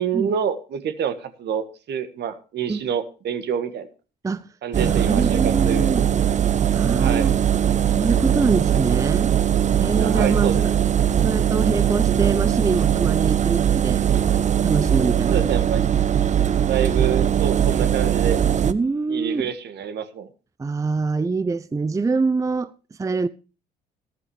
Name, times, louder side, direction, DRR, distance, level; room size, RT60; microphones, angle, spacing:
voice 1, 0.0-3.9 4.6-6.1 7.0-7.3 10.0-10.8 15.3-15.9 16.7-18.4 19.1-20.3, right 8 dB, 55° right, 1.6 m, -27 dB
Engine, 4.7-18.7, right 9 dB, 35° right, 0.8 m, -20 dB
voice 2, 4.8-6.1 6.7-7.3 7.9-9.3 9.8-10.7 11.2-14.0 14.6-15.4 18.7-19.5 20.6-23.3, right 4 dB, 15° right, 0.5 m, -24 dB
13.5 x 13.5 x 3.1 m
hypercardioid pair, 55°, 21 cm